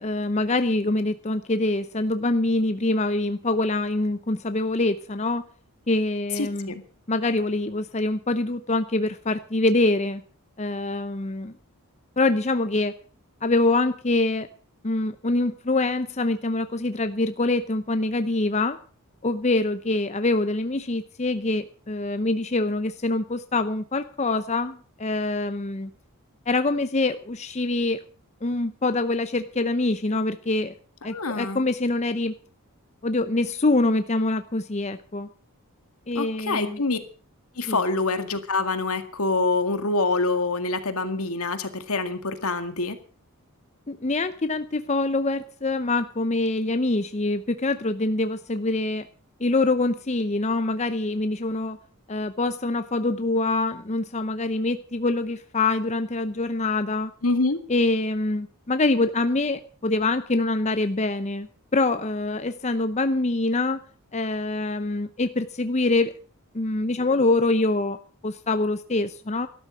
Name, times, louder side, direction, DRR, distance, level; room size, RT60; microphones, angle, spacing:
voice 1, 0.0-5.4 5.9-6.7 7.1-10.2 10.6-11.5 12.2-13.0 13.4-14.5 14.8-18.8 19.2-25.9 26.5-28.0 28.4-30.7 31.0-32.3 33.0-35.3 36.1-36.8 37.7-37.8 43.9-49.1 49.4-51.8 52.1-57.1 57.7-63.8 64.1-66.2 66.5-68.0 68.2-69.5, left 2 dB, 30° left, 10 dB, 0.7 m, -25 dB
voice 2, 6.4-6.8 31.1-31.6 36.2-37.0 37.6-43.0 57.2-57.6, left 3 dB, 75° left, 9 dB, 2.0 m, -26 dB
13.5 x 12.5 x 6.3 m, 0.40 s
head